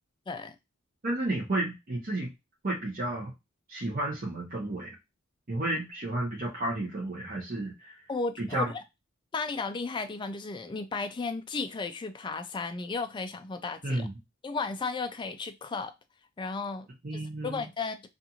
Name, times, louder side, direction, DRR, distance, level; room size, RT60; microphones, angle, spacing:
voice 1, 1.0-2.3 2.6-3.3 3.7-4.9 5.5-7.9 8.4-8.7 13.8-14.1 17.0-17.7, right 1 dB, 40° right, 0.7 m, -32 dB
voice 2, 8.1-8.8 9.3-14.1 14.4-15.9 16.4-16.9 17.1-18.1, left 4 dB, 20° left, 0.3 m, -34 dB
2.5 x 2.5 x 2.7 m
head